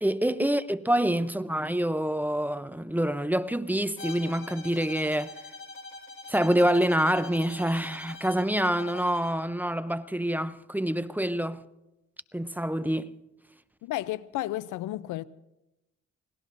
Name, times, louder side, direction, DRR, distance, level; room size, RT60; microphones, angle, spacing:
voice 1, 0.0-5.3 6.3-11.6 12.3-13.1, right 1 dB, 5° right, 0.6 m, -26 dB
Bowed string instrument, 4.0-9.4, left 3 dB, 40° left, 1.8 m, -44 dB
voice 2, 13.8-15.2, left 15 dB, 85° left, 0.6 m, -32 dB
29.0 x 18.0 x 2.6 m
cardioid pair, 90°, 30 cm